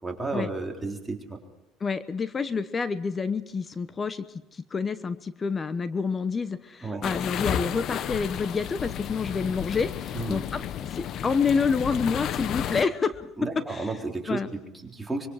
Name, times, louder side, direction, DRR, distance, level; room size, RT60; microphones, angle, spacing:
voice 1, 0.0-1.4 6.8-7.0 10.1-10.4 13.4-15.3, right 3 dB, 10° right, 0 dB, 3.8 m, -32 dB
voice 2, 1.8-4.3 4.5-10.6 10.9-13.3 13.5-13.9 14.3-14.5, left 5 dB, 30° left, 13 dB, 1.0 m, -28 dB
sound 1, 7.0-12.8, left 10 dB, 55° left, 1.0 m, -32 dB
25.0 x 22.5 x 4.9 m, 0.95 s
supercardioid pair, 90°, 0 cm